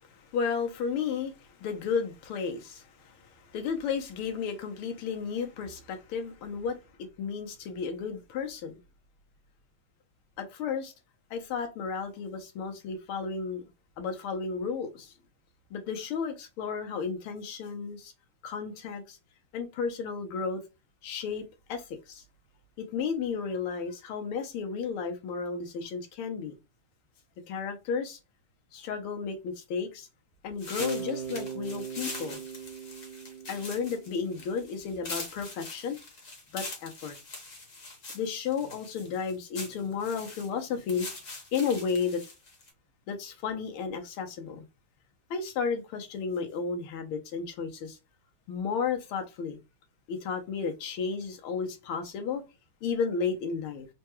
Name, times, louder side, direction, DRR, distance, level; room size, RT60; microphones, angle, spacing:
voice 1, 0.0-6.8 7.2-8.7 10.4-10.9 11.3-13.6 14.0-15.1 15.7-18.1 18.4-19.2 19.5-20.6 21.0-22.2 22.8-26.5 27.5-28.2 28.7-30.1 30.4-32.4 33.5-36.0 36.5-37.2 38.1-41.1 41.5-42.2 43.1-44.6 45.3-48.0 48.5-49.6 50.1-52.4 52.8-53.9, left 5 dB, 80° left, 1.7 m, -33 dB
sound 1, 30.6-42.7, left 3 dB, 40° left, 1.4 m, -43 dB
Bass guitar, 30.8-34.8, right 8 dB, 70° right, 1.5 m, -40 dB
4.4 x 2.2 x 2.9 m
omnidirectional pair, 2.4 m